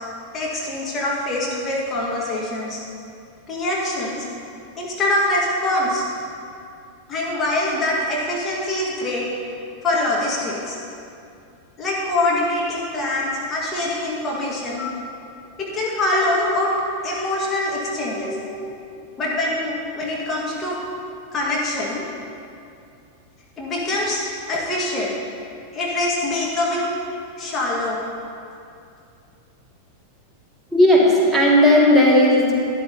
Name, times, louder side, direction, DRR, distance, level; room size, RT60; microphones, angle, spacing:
voice 1, 0.3-2.8 3.5-4.3 4.8-6.0 7.1-9.3 9.8-10.8 11.8-14.9 15.6-16.7 17.0-18.4 19.2-20.8 21.3-22.0 23.6-24.2 24.5-25.1 25.7-26.9 27.4-28.0, left 1 dB, 20° left, -4 dB, 1.6 m, -24 dB
voice 2, 18.2-18.7 30.7-32.7, left 1 dB, 10° right, -4 dB, 1.9 m, -16 dB
13.0 x 10.0 x 2.8 m, 2.5 s
figure-of-eight pair, 90°, 0 cm